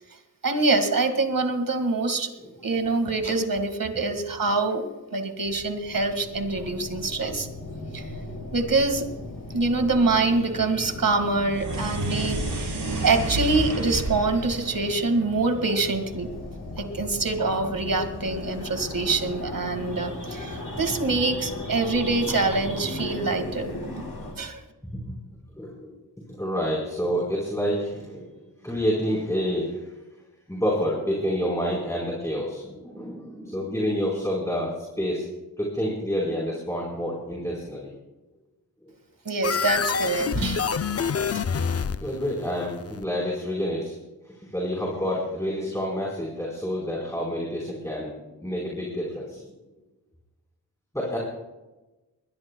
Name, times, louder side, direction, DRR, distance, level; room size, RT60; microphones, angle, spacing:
voice 1, 0.4-2.3 2.6-7.5 7.9-8.1 8.5-9.1 9.5-12.7 13.0-16.3 16.8-24.0 24.4-24.6 39.3-40.7 41.3-41.4, right 3 dB, 55° right, 7 dB, 2.0 m, -25 dB
sound 1, 5.4-24.3, left 2 dB, 65° left, 3.7 m, -37 dB
sound 2, 11.5-15.9, right 2 dB, 85° right, 4.3 m, -31 dB
voice 2, 25.6-25.9 26.4-28.3 28.6-29.7 30.5-34.7 35.0-35.3 35.6-37.9 38.8-38.9 42.0-43.9 44.5-48.1 48.4-49.4 50.9-51.2, equal, 5° left, -4 dB, 4.2 m, -28 dB
sound 3, 39.4-43.0, left 6 dB, 40° left, 0.5 m, -27 dB
21.0 x 21.0 x 2.3 m, 1.1 s
wide cardioid pair, 90°, 40 cm